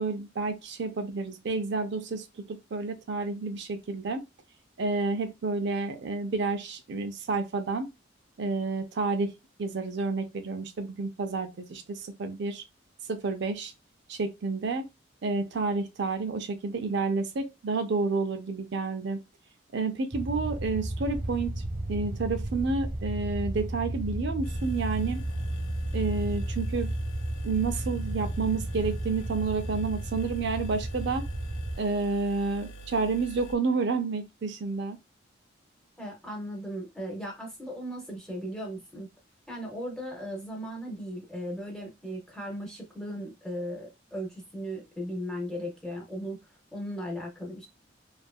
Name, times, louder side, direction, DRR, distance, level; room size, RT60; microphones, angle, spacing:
voice 1, 0.0-4.2 4.8-7.9 8.4-9.3 9.6-12.6 13.1-13.7 14.1-14.8 15.2-19.2 19.7-21.6 21.9-25.2 25.9-26.9 27.4-31.2 31.8-35.0, right 4 dB, 60° right, 0.5 m, -30 dB
sound 1, 20.1-31.8, right 1 dB, 35° right, 0.9 m, -33 dB
sound 2, 24.4-33.6, right 2 dB, 70° left, 0.6 m, -46 dB
voice 2, 36.0-39.1 39.5-46.4 46.7-47.7, equal, 5° left, 0.6 m, -37 dB
2.7 x 2.4 x 2.3 m
head